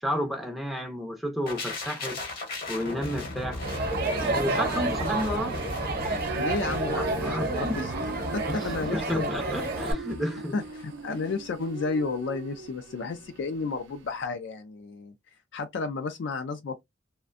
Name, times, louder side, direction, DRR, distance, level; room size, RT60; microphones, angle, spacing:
voice 1, 0.0-2.2 2.7-3.6 4.2-5.5 6.9-8.0 8.5-10.5, left 1 dB, ahead, 0.4 m, -32 dB
sound 1, 1.5-11.3 11.6-11.8, left 2 dB, 55° left, 0.9 m, -38 dB
Crowd, 3.6-9.9, right 2 dB, 55° right, 0.8 m, -30 dB
sound 2, 6.1-14.3, right 3 dB, 90° right, 0.4 m, -41 dB
voice 2, 6.3-7.9 8.3-9.3 10.5-15.1 15.5-16.8, left 4 dB, 70° left, 0.3 m, -32 dB
2.4 x 2.1 x 2.4 m
head